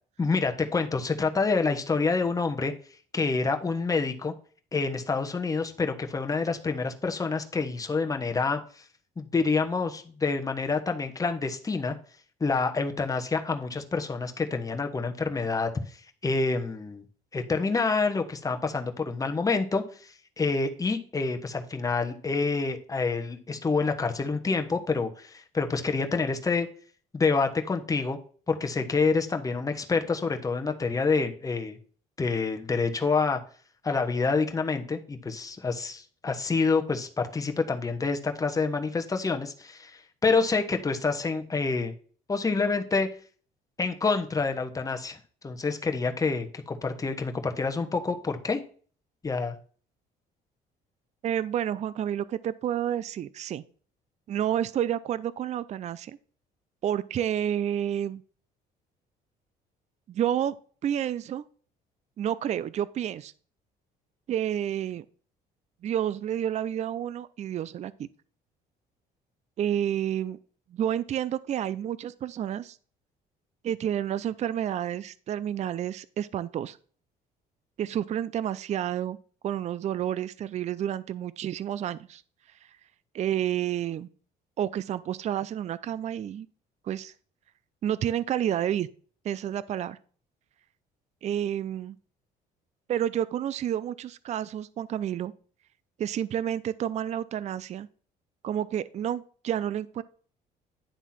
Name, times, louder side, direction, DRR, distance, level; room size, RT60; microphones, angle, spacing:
voice 1, 0.2-2.7 3.1-4.3 4.7-8.8 9.2-11.9 12.4-17.0 17.3-26.7 27.1-28.2 28.5-31.8 32.2-33.4 33.8-41.9 42.3-43.1 43.8-48.6 49.2-49.6, left 4 dB, 20° left, 5 dB, 1.1 m, -27 dB
voice 2, 51.2-53.6 54.3-56.2 56.8-58.2 60.1-60.5 60.8-61.4 62.2-63.3 64.3-65.0 65.8-67.9 69.6-70.4 70.7-72.8 73.6-76.8 77.8-79.2 79.4-82.2 82.6-82.7 83.1-84.1 84.6-86.5 86.8-87.1 87.8-88.9 89.2-90.0 91.2-92.0 92.9-95.3 96.0-97.9 98.4-100.0, right 10 dB, 40° right, 17 dB, 0.4 m, -30 dB
10.0 x 3.6 x 5.9 m, 0.44 s
cardioid pair, 110°, 17 cm